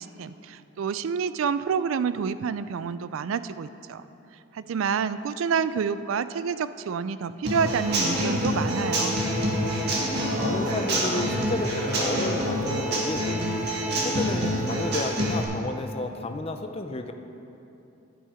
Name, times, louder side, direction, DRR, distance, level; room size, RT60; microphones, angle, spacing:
voice 1, 0.0-4.0 4.5-9.2, right 6 dB, 75° right, 14 dB, 0.3 m, -28 dB
Human voice / Acoustic guitar / Drum, 7.4-15.4, equal, 55° right, 1.8 m, -26 dB
voice 2, 10.4-13.4 14.0-17.1, left 2 dB, 30° left, 6 dB, 0.5 m, -32 dB
10.0 x 8.6 x 5.0 m, 2.9 s
head